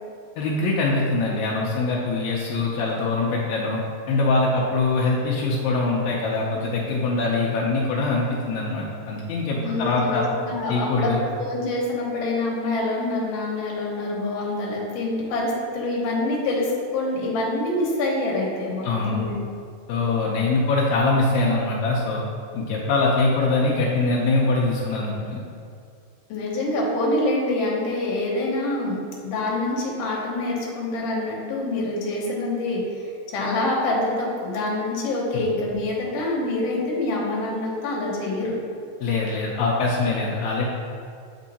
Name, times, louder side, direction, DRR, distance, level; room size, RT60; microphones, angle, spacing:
voice 1, 0.4-3.8 4.1-10.3 10.7-11.2 18.8-19.2 19.9-22.2 22.5-25.4 39.0-40.6, left 3 dB, 80° left, -3 dB, 2.0 m, -23 dB
voice 2, 9.6-19.4 26.3-29.0 29.2-38.6, left 2 dB, 65° left, -3 dB, 2.0 m, -26 dB
7.6 x 3.6 x 4.1 m, 2.4 s
omnidirectional pair, 3.3 m